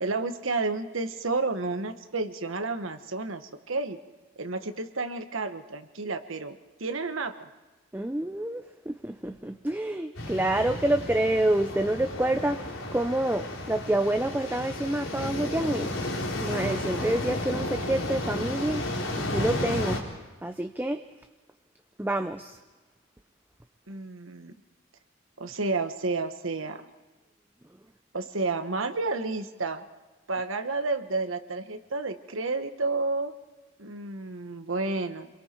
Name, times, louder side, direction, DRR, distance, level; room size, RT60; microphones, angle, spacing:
voice 1, 0.0-4.0 4.4-7.5 23.9-24.5 25.4-26.8 28.1-29.8 30.3-33.3 33.8-35.3, right 3 dB, 80° right, 8 dB, 1.3 m, -31 dB
voice 2, 7.9-15.9 16.4-18.8 19.2-20.0 20.4-21.0 22.0-22.6, right 1 dB, 10° right, 7 dB, 0.5 m, -28 dB
sound 1, 10.1-20.0, left 1 dB, 90° left, 3.4 m, -33 dB
27.0 x 22.0 x 4.5 m, 1.2 s
head